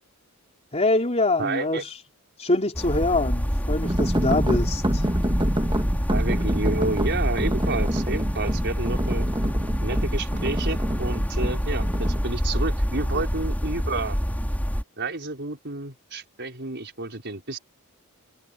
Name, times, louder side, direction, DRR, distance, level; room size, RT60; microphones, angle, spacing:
voice 1, 0.7-1.8 2.4-5.1, left 2 dB, 30° left, 3.9 m, -24 dB
voice 2, 1.4-1.8 6.1-9.3 9.8-14.2 15.0-17.6, right 2 dB, 50° right, 5.3 m, -30 dB
sound 1, 2.7-14.8, equal, 5° left, 5.7 m, -26 dB
sound 2, 3.8-12.2, right 1 dB, 20° right, 2.1 m, -29 dB
head